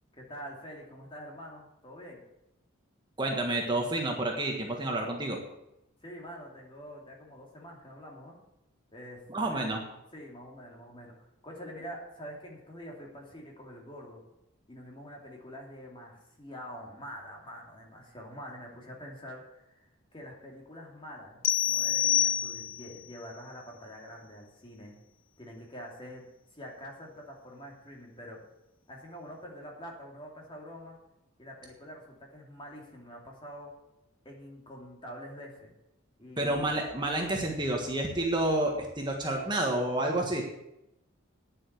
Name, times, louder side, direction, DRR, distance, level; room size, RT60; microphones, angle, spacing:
voice 1, 0.2-2.2 6.0-8.4 8.9-9.7 10.1-14.2 14.7-19.9 20.1-25.0 25.4-26.3 26.5-28.4 28.9-31.0 31.4-33.7 34.2-35.7 36.2-36.7, equal, 25° left, -1 dB, 2.7 m, -46 dB
voice 2, 3.2-5.4 9.3-9.8 36.4-40.5, right 1 dB, 20° right, 1 dB, 1.5 m, -29 dB
sound 1, 21.4-23.0, left 11 dB, 45° left, 0.5 m, -27 dB
9.9 x 7.6 x 8.0 m, 0.86 s
head